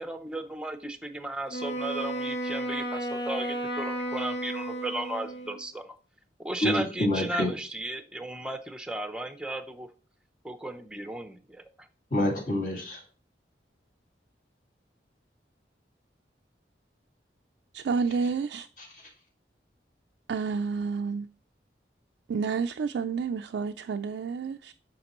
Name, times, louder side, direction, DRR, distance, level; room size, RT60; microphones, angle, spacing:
voice 1, 0.0-5.8 6.4-9.9 10.4-11.9, right 1 dB, 5° right, 0.6 m, -35 dB
Wind instrument woodwind instrument, 1.5-5.7, right 1 dB, 75° left, 1.1 m, -33 dB
voice 2, 6.6-7.5 12.1-13.0 18.8-19.1, left 1 dB, 45° left, 2.1 m, -28 dB
voice 3, 17.7-18.7 20.3-21.3 22.3-24.7, right 5 dB, 75° right, 0.3 m, -30 dB
9.3 x 5.8 x 3.0 m
head